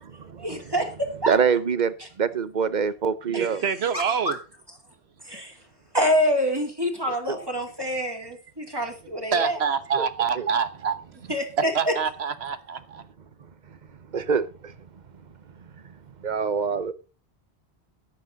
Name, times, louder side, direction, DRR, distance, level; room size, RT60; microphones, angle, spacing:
voice 1, 0.4-1.3 3.3-3.5 3.9-4.4 5.2-5.6 5.9-9.6 11.3-11.9, equal, 20° right, 2.9 m, -26 dB
voice 2, 1.3-3.6 7.3-7.4 9.9-10.1 10.4-10.5 14.1-14.7 16.2-16.9, right 6 dB, 45° right, 1.0 m, -25 dB
voice 3, 3.3-4.4 9.3-10.9 11.7-13.0, right 6 dB, 75° right, 1.4 m, -26 dB
13.5 x 10.0 x 4.0 m
omnidirectional pair, 1.1 m